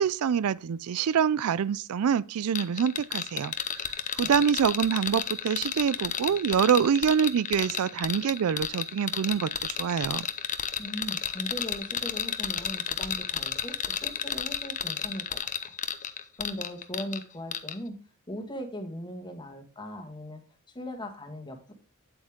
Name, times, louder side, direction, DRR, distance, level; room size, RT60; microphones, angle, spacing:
voice 1, 0.0-10.3, right 7 dB, 75° right, 0.4 m, -26 dB
sound 1, 2.5-17.2 17.5-17.7, left 8 dB, 35° left, 0.8 m, -32 dB
voice 2, 10.8-15.7 16.4-18.0 18.3-20.4 20.7-21.7, equal, 20° left, 1.7 m, -39 dB
8.9 x 8.3 x 3.6 m
head